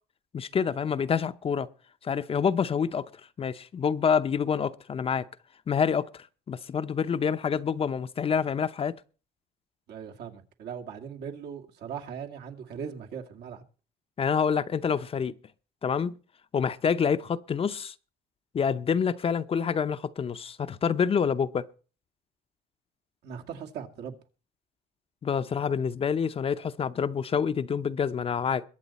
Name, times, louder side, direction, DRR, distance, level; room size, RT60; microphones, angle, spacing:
voice 1, 0.3-1.7 2.0-3.0 3.4-5.3 5.7-8.9 14.2-15.3 15.8-16.2 16.5-17.9 18.5-21.6 25.2-28.6, left 6 dB, 35° left, 0.7 m, -27 dB
voice 2, 9.9-13.6 23.2-24.2, right 7 dB, 75° right, 2.2 m, -39 dB
22.0 x 8.4 x 4.2 m
cardioid pair, 110°, 17 cm